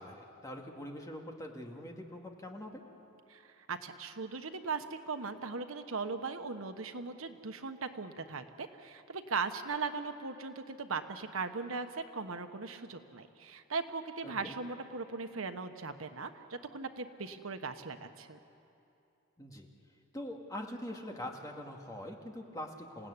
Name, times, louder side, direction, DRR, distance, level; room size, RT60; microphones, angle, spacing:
voice 1, 0.0-2.8 14.2-14.5 19.4-19.7 20.1-23.1, left 1 dB, 15° left, 1 dB, 2.1 m, -43 dB
voice 2, 3.3-18.4, right 4 dB, 85° right, 8 dB, 1.2 m, -39 dB
28.5 x 17.0 x 9.8 m, 2.7 s
head